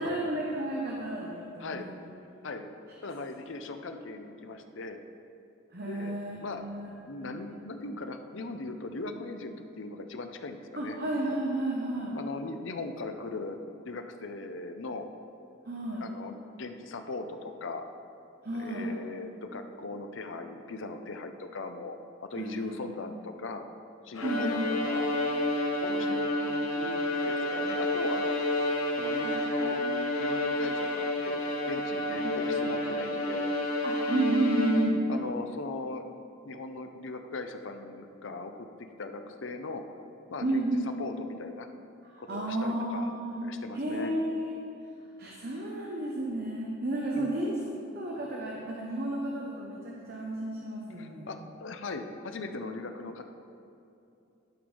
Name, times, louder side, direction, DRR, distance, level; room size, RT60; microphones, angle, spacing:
voice 1, 0.0-1.9 5.7-6.9 7.2-7.6 10.8-12.2 15.7-16.1 18.4-18.9 22.4-22.8 24.2-24.6 25.9-26.2 29.1-29.5 29.8-30.7 32.2-32.3 33.8-35.0 40.4-41.1 42.0-43.5 43.7-44.5 45.2-47.6 47.9-51.3, right 1 dB, 50° right, -2 dB, 0.9 m, -32 dB
voice 2, 3.0-5.0 5.8-6.1 6.4-6.6 7.1-11.0 12.1-13.6 13.8-15.1 16.0-17.8 18.5-23.6 24.0-25.1 25.8-28.3 29.0-29.8 30.2-33.5 35.1-36.1 36.4-38.7 39.0-39.8 40.3-40.7 41.0-41.7 42.2-43.1 43.4-44.1 47.1-47.3 51.0-53.3, left 3 dB, 65° left, 6 dB, 0.6 m, -39 dB
Bowed string instrument, 24.2-35.2, left 1 dB, 85° left, 1.2 m, -30 dB
11.5 x 5.2 x 5.4 m, 2.6 s
head